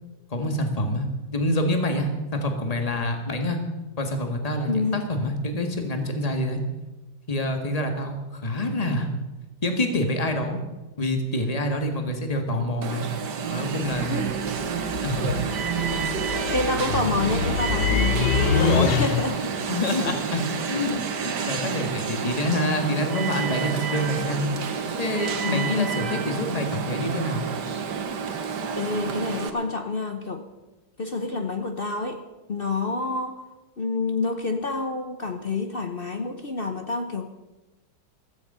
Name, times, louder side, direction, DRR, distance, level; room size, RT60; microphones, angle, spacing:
voice 1, 0.3-1.1 1.3-3.6 4.0-6.6 7.3-9.1 9.6-10.6 11.0-13.1 13.5-14.4 15.0-15.3 16.9-17.2 18.6-18.9 19.7-24.5 25.0-27.4, left 1 dB, 20° left, 5 dB, 1.8 m, -26 dB
voice 2, 4.7-5.0 14.0-14.3 16.5-19.5 19.9-20.2 25.4-25.9 28.7-30.4 31.0-32.2 32.5-33.4 33.8-37.3, left 3 dB, 40° left, 6 dB, 0.8 m, -28 dB
Alarm, 12.8-29.5, right 6 dB, 70° right, 1.8 m, -29 dB
sound 1, 13.9-19.5, left 6 dB, 80° left, 1.6 m, -26 dB
15.5 x 14.5 x 5.6 m, 1.1 s
omnidirectional pair, 2.0 m